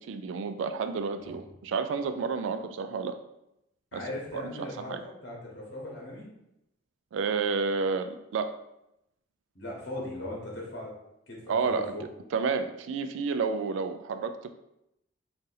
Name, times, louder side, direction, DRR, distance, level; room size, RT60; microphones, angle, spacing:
voice 1, 0.0-3.2 3.9-4.0 4.4-5.0 7.1-8.5 11.5-11.9 12.3-14.5, right 5 dB, 70° right, 8 dB, 0.3 m, -30 dB
voice 2, 3.9-6.3 9.5-10.9 11.3-12.0, left 1 dB, 60° left, -3 dB, 1.0 m, -38 dB
2.7 x 2.5 x 3.9 m, 0.83 s
head